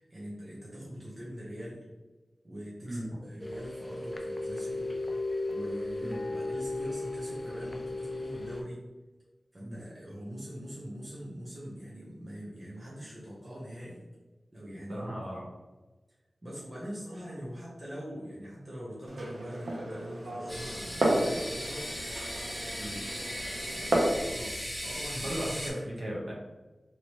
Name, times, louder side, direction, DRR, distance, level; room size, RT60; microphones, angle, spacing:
voice 1, 0.0-1.8 2.4-5.0 5.5-8.8 9.5-14.0 14.5-15.0 16.4-21.9 22.7-22.9 23.2-25.4, equal, 35° right, -7 dB, 0.8 m, -43 dB
sound 1, 3.4-8.6, left 2 dB, 30° left, 0.4 m, -35 dB
voice 2, 6.0-6.3 9.6-9.8 14.9-15.5 22.8-23.0 25.2-26.3, equal, 55° right, -4 dB, 1.1 m, -36 dB
Glass, 19.1-24.2, right 1 dB, 85° right, 0.7 m, -32 dB
sound 2, 20.5-25.7, equal, 10° left, 1.0 m, -38 dB
3.0 x 2.9 x 3.0 m, 1.2 s
wide cardioid pair, 85°, 0 cm